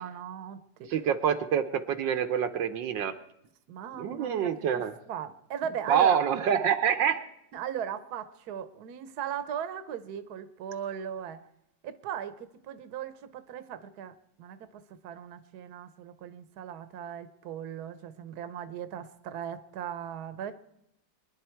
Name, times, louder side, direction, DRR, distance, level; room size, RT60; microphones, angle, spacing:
voice 1, 0.0-0.9 3.7-4.5 5.1-6.2 7.5-11.4 11.8-20.5, right 9 dB, 60° right, 11 dB, 1.4 m, -38 dB
voice 2, 0.9-3.1 4.0-4.9 5.9-7.2, right 8 dB, 75° right, 8 dB, 1.5 m, -26 dB
24.5 x 10.5 x 4.5 m, 0.79 s
omnidirectional pair, 2.1 m